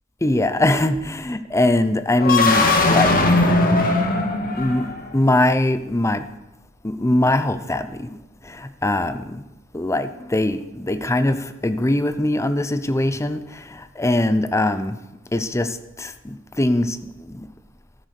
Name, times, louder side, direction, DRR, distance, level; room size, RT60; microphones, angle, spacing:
voice 1, 0.2-3.5 4.6-4.9 5.1-6.3 6.8-9.4 9.7-15.0 15.3-17.5, left 1 dB, 15° left, 11 dB, 0.6 m, -22 dB
sound 1, 2.2-5.2, left 2 dB, 45° left, 2.0 m, -19 dB
13.0 x 9.5 x 6.6 m, 0.95 s
head